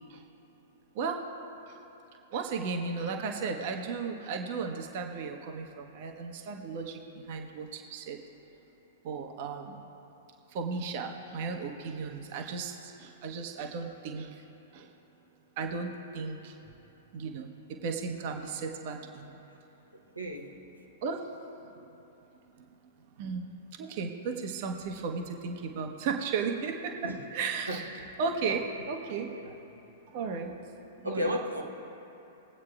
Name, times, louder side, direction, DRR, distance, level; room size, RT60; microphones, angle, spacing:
voice 1, 2.3-8.2 9.0-9.8 10.5-14.4 14.7-14.9 15.6-16.6 17.1-17.5 17.8-19.3 21.0-21.2 23.2-23.5 23.8-27.8 28.2-29.3 30.1-30.5 31.0-31.3, right 5 dB, 45° right, 4 dB, 0.9 m, -35 dB
voice 2, 20.1-20.5 27.0-27.2 27.7-27.8 28.5-28.6 29.3-29.5 31.0-31.6, equal, 85° right, 0 dB, 1.0 m, -33 dB
21.5 x 8.4 x 2.4 m, 3.0 s
figure-of-eight pair, 105°, 0 cm